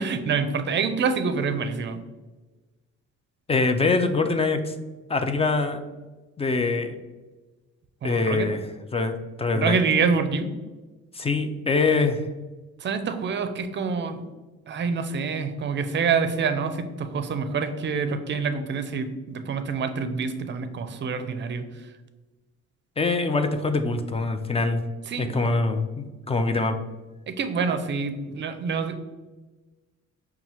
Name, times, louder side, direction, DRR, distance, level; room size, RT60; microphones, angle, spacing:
voice 1, 0.0-2.0 8.0-8.5 9.5-10.5 12.8-14.2 14.7-21.6 25.1-25.4 27.3-29.0, right 5 dB, 40° right, 9 dB, 0.5 m, -26 dB
voice 2, 3.5-4.7 5.1-5.8 6.4-7.0 8.0-8.6 8.9-9.8 11.1-12.3 23.0-24.8 25.2-26.8, left 3 dB, 20° left, 7 dB, 0.3 m, -24 dB
5.4 x 2.3 x 3.0 m, 1.2 s
cardioid pair, 90°, 30 cm